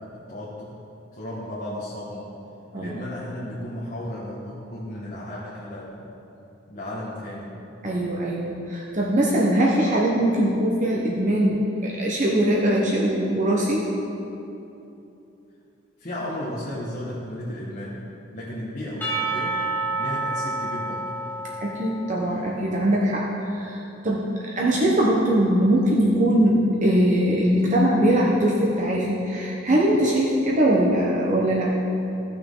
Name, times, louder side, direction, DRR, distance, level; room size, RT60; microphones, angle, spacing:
voice 1, 0.1-0.8 1.1-2.3 2.7-6.1 6.7-7.5 16.0-18.1 18.3-19.6 20.0-21.0, left 1 dB, 40° left, -7 dB, 1.4 m, -34 dB
voice 2, 7.8-13.9 21.6-23.2 23.5-24.2 24.6-31.7, right 1 dB, 40° right, -4 dB, 1.0 m, -21 dB
Percussion / Church bell, 19.0-22.7, right 2 dB, 10° left, 1.3 m, -29 dB
15.5 x 6.0 x 3.8 m, 2.9 s
head